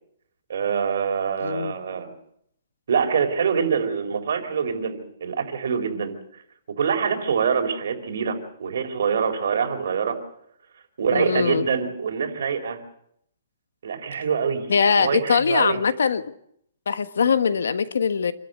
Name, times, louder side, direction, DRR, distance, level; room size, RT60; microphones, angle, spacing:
voice 1, 0.5-2.1 2.9-6.2 6.7-10.2 11.0-12.8 13.8-15.8, right 6 dB, 65° right, 4 dB, 4.3 m, -25 dB
voice 2, 1.4-1.8 11.1-11.7 14.7-16.2 16.9-18.3, left 6 dB, 90° left, 12 dB, 1.4 m, -22 dB
27.0 x 13.0 x 8.0 m, 0.71 s
hypercardioid pair, 165°, 0 cm